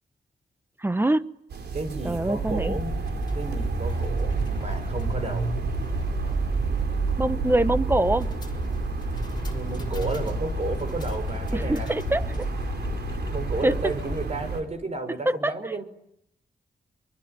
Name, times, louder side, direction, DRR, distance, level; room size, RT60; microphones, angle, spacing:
voice 1, 0.8-1.3 2.0-2.8 7.2-8.3 11.5-12.2 13.6-13.8 15.2-15.7, right 1 dB, 15° right, 14 dB, 1.2 m, -24 dB
sound 1, 1.5-14.6, right 5 dB, 85° right, 4.3 m, -30 dB
voice 2, 1.7-3.0 3.3-5.5 7.4-7.7 9.5-11.9 13.3-15.8, right 3 dB, 40° right, 10 dB, 6.1 m, -33 dB
sound 2, 2.6-14.3, left 3 dB, 25° left, 4.2 m, -34 dB
24.5 x 24.0 x 9.5 m, 0.76 s
wide cardioid pair, 110°, 17 cm